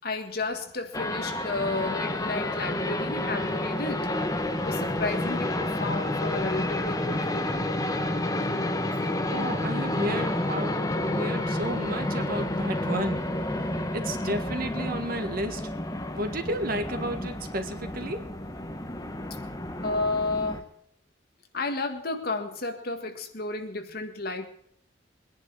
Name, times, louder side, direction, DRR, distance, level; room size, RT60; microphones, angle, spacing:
voice 1, 0.0-4.1 4.5-7.8 8.5-8.6 19.8-20.7 21.5-24.5, left 3 dB, 55° left, 6 dB, 1.8 m, -32 dB
sound 1, 0.9-20.6, left 1 dB, 20° left, 1.2 m, -30 dB
voice 2, 9.3-13.2 13.9-15.7 16.2-18.2, right 1 dB, 55° right, 7 dB, 1.8 m, -32 dB
22.0 x 10.5 x 4.8 m, 0.68 s
head